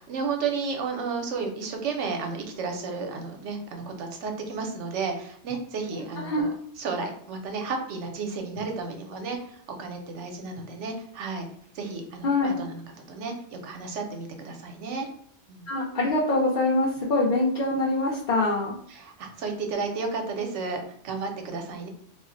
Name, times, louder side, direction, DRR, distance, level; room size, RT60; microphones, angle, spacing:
voice 1, 0.0-6.5 6.8-11.5 11.7-12.8 13.1-15.1 15.5-15.7 18.9-21.9, right 4 dB, 75° right, 4 dB, 0.9 m, -32 dB
voice 2, 15.7-18.8, left 2 dB, 55° left, -5 dB, 0.6 m, -24 dB
2.4 x 2.0 x 3.7 m, 0.64 s
omnidirectional pair, 1.2 m